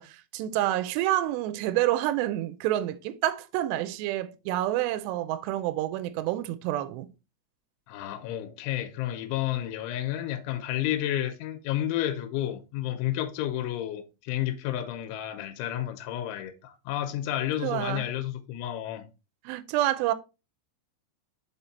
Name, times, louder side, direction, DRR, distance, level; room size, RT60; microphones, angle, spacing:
voice 1, 0.0-7.1 17.6-18.1 19.5-20.1, right 14 dB, 85° right, 2.6 m, -28 dB
voice 2, 7.9-19.1, left 12 dB, 90° left, 3.2 m, -31 dB
6.6 x 4.5 x 4.1 m
omnidirectional pair, 5.4 m